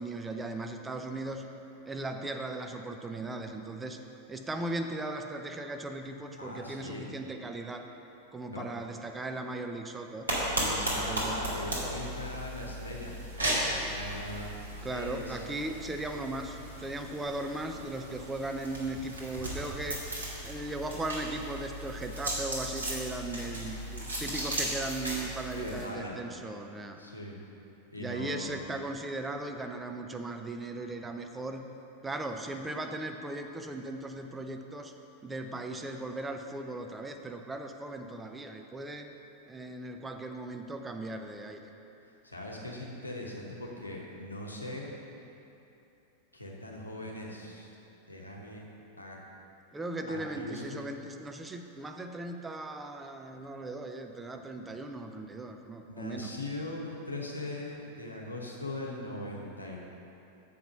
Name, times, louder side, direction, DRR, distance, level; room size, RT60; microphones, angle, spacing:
voice 1, 0.0-1.6 1.9-4.0 4.3-7.9 8.3-10.3 11.0-11.5 14.8-20.0 20.4-27.0 28.0-31.7 32.0-34.9 35.2-39.1 39.5-41.6 49.7-56.3, right 2 dB, 10° right, 5 dB, 0.5 m, -38 dB
voice 2, 6.4-7.1 8.5-8.6 10.6-13.1 13.6-14.5 14.9-15.4 25.5-26.1 27.0-27.4 27.9-28.5 42.2-44.9 46.3-47.7 48.1-48.7 49.0-49.2 50.1-50.9 55.9-59.8, left 1 dB, 85° left, -2 dB, 1.1 m, -40 dB
sound 1, 10.3-25.9, right 1 dB, 75° right, 1.9 m, -36 dB
7.1 x 4.9 x 6.4 m, 2.9 s
figure-of-eight pair, 90°, 0 cm